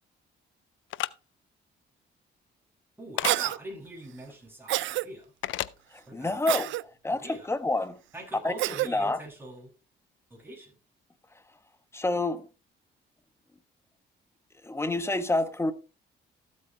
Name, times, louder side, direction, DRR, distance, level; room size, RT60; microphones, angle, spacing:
sound 1, 0.9-1.1 3.2-3.4 5.4-5.7, left 15 dB, 80° left, 0.5 m, -30 dB
voice 1, 3.0-5.3 6.1-6.5 7.1-7.5 8.1-9.7 10.3-10.7, right 1 dB, 10° right, 6.5 m, -43 dB
Cough, 3.2-3.6 4.7-5.1 6.5-6.8 8.6-8.9, right 16 dB, 75° right, 0.4 m, -27 dB
voice 2, 5.9-8.0 8.4-8.5 8.8-9.2 11.9-12.5 14.6-15.7, left 2 dB, 15° left, 1.2 m, -28 dB
13.5 x 8.4 x 3.2 m
cardioid pair, 90°, 20 cm